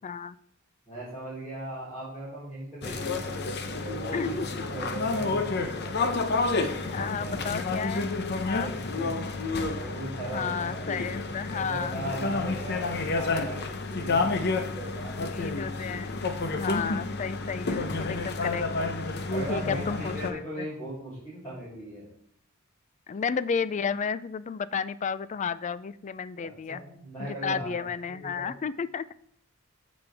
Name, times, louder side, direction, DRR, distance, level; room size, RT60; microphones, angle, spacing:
voice 1, 0.0-0.4 4.1-4.6 6.9-8.1 8.5-8.7 10.3-12.0 15.2-16.2 16.5-18.9 19.5-20.7 23.1-26.8 27.2-29.0, left 6 dB, 35° left, 16 dB, 0.3 m, -32 dB
voice 2, 0.9-6.2 6.8-7.5 8.6-9.3 9.7-15.5 19.3-22.1 26.4-28.5, right 1 dB, 10° left, -14 dB, 4.3 m, -39 dB
sound 1, 2.8-20.3, left 3 dB, 50° left, 0.8 m, -30 dB
14.0 x 5.2 x 3.5 m, 0.65 s
head